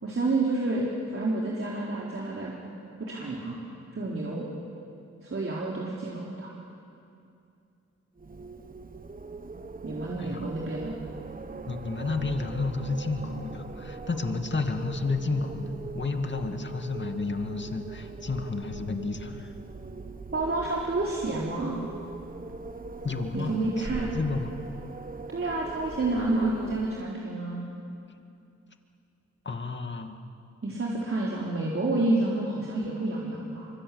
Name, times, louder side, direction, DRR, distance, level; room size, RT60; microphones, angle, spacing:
voice 1, 0.0-2.5 3.0-3.6 3.9-4.5 5.2-6.5 9.8-11.0 20.3-21.8 23.3-24.1 25.3-27.7 30.6-33.7, right 2 dB, 45° right, -4 dB, 4.2 m, -29 dB
Wind, 8.2-27.2, right 3 dB, 30° right, 1.4 m, -41 dB
voice 2, 11.7-19.5 23.0-24.6 29.5-30.2, left 3 dB, 40° left, 6 dB, 2.3 m, -31 dB
24.5 x 23.5 x 8.7 m, 2.5 s
cardioid pair, 65°, 29 cm